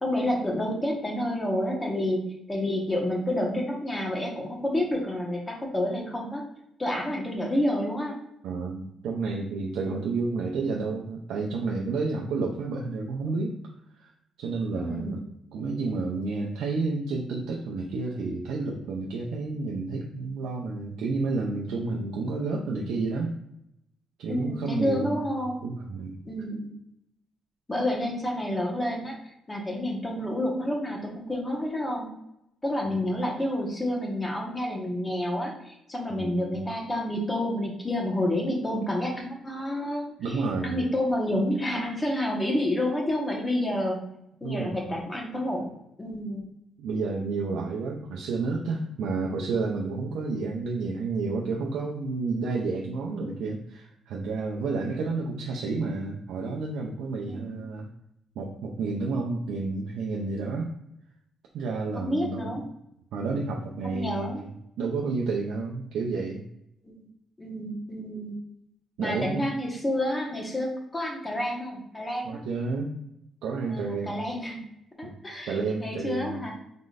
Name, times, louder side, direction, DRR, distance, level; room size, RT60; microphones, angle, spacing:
voice 1, 0.0-6.4 6.8-8.2 9.9-10.0 14.7-15.2 24.3-25.7 26.2-26.7 27.7-29.2 29.5-32.1 32.6-44.0 44.4-45.7 46.0-46.4 57.2-57.6 61.9-62.6 63.8-64.4 66.8-66.9 67.4-68.3 69.0-72.4 73.7-74.6 75.0-76.5, left 1 dB, 20° left, -1 dB, 1.2 m, -29 dB
voice 2, 8.4-13.6 14.0-14.1 14.4-15.2 15.5-23.3 24.2-25.2 25.6-26.2 36.1-36.6 40.2-40.9 44.4-44.8 46.8-57.9 58.4-60.7 61.5-62.5 63.1-64.5 64.8-66.4 69.0-69.5 72.2-73.0 73.4-74.2 75.0-75.1 75.5-76.4, right 3 dB, 80° right, -1 dB, 0.5 m, -30 dB
3.8 x 3.7 x 2.5 m, 0.80 s
cardioid pair, 90°, 0 cm